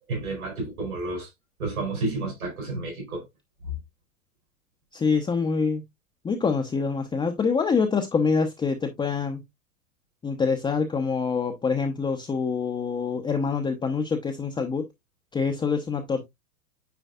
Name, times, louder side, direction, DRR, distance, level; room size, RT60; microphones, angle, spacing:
voice 1, 0.1-1.3 1.6-3.2, right 3 dB, 75° right, 4.5 m, -30 dB
voice 2, 4.9-5.8 6.2-9.4 10.2-14.9 15.3-16.2, left 5 dB, 10° left, 0.8 m, -25 dB
9.3 x 5.0 x 2.4 m
hypercardioid pair, 100°, 43 cm